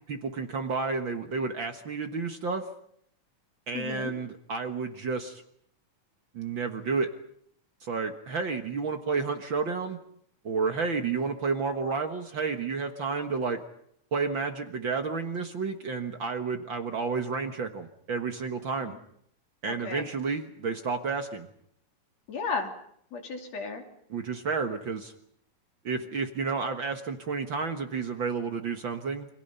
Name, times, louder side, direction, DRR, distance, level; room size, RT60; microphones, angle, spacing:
voice 1, 0.1-2.7 3.7-5.4 6.3-7.1 7.8-10.0 10.4-13.6 14.1-18.9 19.6-21.5 24.1-25.1 25.8-29.3, right 4 dB, 50° right, 6 dB, 1.8 m, -31 dB
voice 2, 3.7-4.1 18.8-19.0 19.7-20.0 22.3-22.7 23.1-23.8, left 4 dB, 65° left, 3 dB, 3.9 m, -34 dB
29.0 x 25.5 x 5.6 m, 0.69 s
omnidirectional pair, 3.3 m